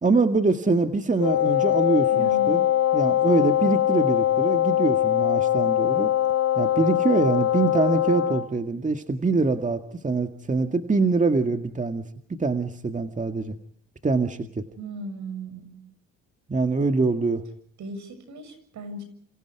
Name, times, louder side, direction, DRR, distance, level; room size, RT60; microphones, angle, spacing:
voice 1, 0.0-2.6 2.9-6.1 6.6-12.0 12.3-13.6 14.0-14.7 16.5-17.4, right 3 dB, 25° right, 7 dB, 2.0 m, -24 dB
Wind instrument woodwind instrument, 1.2-8.5, left 11 dB, 60° left, 4.0 m, -22 dB
voice 2, 2.1-2.6 14.8-15.8 17.8-19.1, right 2 dB, 70° right, 10 dB, 7.0 m, -37 dB
29.5 x 27.5 x 4.8 m, 0.62 s
cardioid pair, 90°, 30 cm